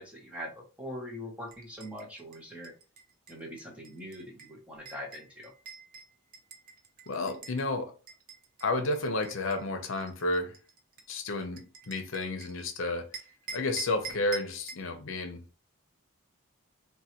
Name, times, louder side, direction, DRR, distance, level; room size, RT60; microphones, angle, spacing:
voice 1, 0.0-2.7 3.3-5.5, equal, 5° right, 0.7 m, -42 dB
sound 1, 1.5-7.6 8.1-12.7 13.1-14.9, right 5 dB, 45° right, 0.5 m, -46 dB
voice 2, 7.1-7.9 8.6-10.6 11.1-13.1 13.5-15.4, left 2 dB, 65° left, 0.6 m, -31 dB
3.8 x 2.2 x 2.8 m
head